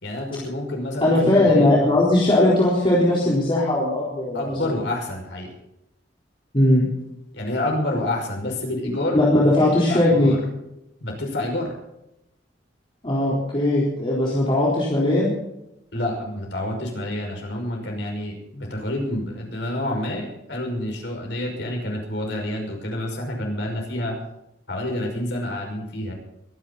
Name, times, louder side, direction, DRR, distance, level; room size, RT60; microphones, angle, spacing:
voice 1, 0.0-1.9 4.3-5.5 7.3-9.2 9.9-10.4 11.0-11.7 15.9-24.1 24.7-26.1, left 1 dB, 70° left, 1 dB, 5.6 m, -28 dB
voice 2, 1.0-4.7 6.5-6.9 9.1-10.4 13.0-15.3, left 1 dB, 30° left, -6 dB, 4.0 m, -19 dB
24.0 x 11.0 x 4.1 m, 0.84 s
head